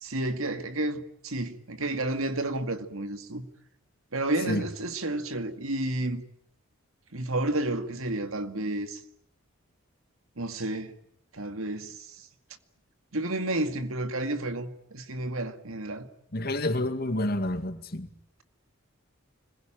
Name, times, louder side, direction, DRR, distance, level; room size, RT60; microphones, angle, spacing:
voice 1, 0.0-3.5 4.1-6.2 7.1-9.0 10.4-10.9 11.3-12.2 13.1-16.1, right 2 dB, 80° right, 2.1 m, -31 dB
voice 2, 16.3-18.1, left 1 dB, 45° left, 2.3 m, -29 dB
26.0 x 21.5 x 8.9 m
head